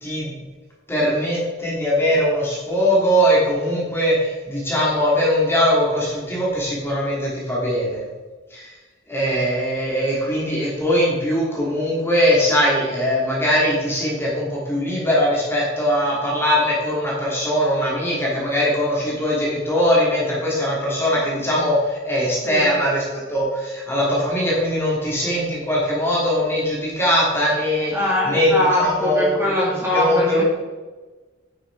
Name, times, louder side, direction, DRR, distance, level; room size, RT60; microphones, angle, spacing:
voice 1, 0.0-0.3 0.9-8.0 8.5-8.7 9.1-27.9 28.2-29.3 29.9-30.4, equal, 10° left, -5 dB, 2.9 m, -21 dB
voice 2, 27.9-30.4, left 1 dB, 10° right, -5 dB, 2.3 m, -22 dB
9.7 x 7.1 x 4.8 m, 1.3 s
head